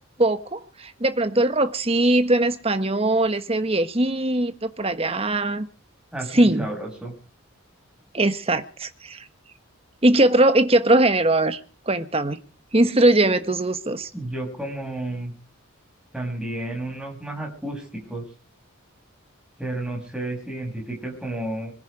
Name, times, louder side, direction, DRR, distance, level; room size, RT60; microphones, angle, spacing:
voice 1, 0.2-5.7 6.3-6.7 8.1-9.2 10.0-11.6 11.9-12.4 12.7-14.1, right 1 dB, 25° right, 1.3 m, -20 dB
voice 2, 6.1-7.1 14.1-15.3 16.1-18.2 19.6-21.7, right 1 dB, 5° right, 6.4 m, -31 dB
25.0 x 10.5 x 5.0 m
head